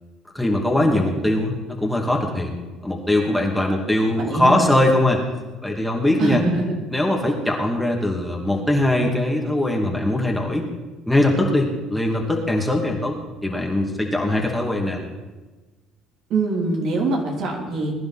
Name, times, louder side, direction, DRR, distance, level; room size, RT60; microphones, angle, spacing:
voice 1, 0.3-2.6 2.8-5.2 5.6-6.4 6.9-10.7 11.1-13.2 13.4-15.0, left 1 dB, 5° left, -1 dB, 2.6 m, -21 dB
voice 2, 4.2-4.6 6.2-6.7 16.3-17.9, right 3 dB, 60° right, -1 dB, 3.6 m, -23 dB
21.0 x 10.5 x 4.4 m, 1.2 s
supercardioid pair, 90°, 0 cm